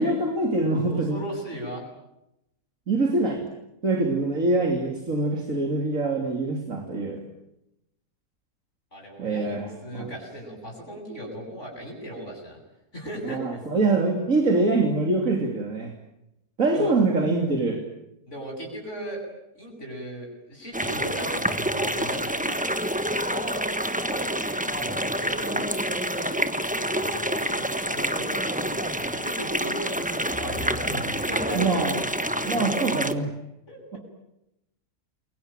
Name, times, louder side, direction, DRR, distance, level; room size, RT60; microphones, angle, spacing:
voice 1, 0.0-1.2 2.9-3.4 3.8-7.2 9.2-10.1 13.2-15.9 16.6-17.8 30.9-31.1 31.5-31.9 32.4-33.3 33.9-34.0, right 2 dB, 55° right, 3 dB, 3.5 m, -24 dB
voice 2, 0.8-1.8 8.9-12.6 12.9-13.4 16.7-16.9 18.3-19.2 19.5-22.6 23.3-23.6 24.1-24.3 24.7-32.0 32.4-32.5 33.7-33.8, right 1 dB, 50° left, 0 dB, 8.3 m, -37 dB
sound 1, 20.7-33.1, right 1 dB, 5° right, 1.1 m, -28 dB
29.0 x 23.0 x 9.0 m, 0.86 s
omnidirectional pair, 1.6 m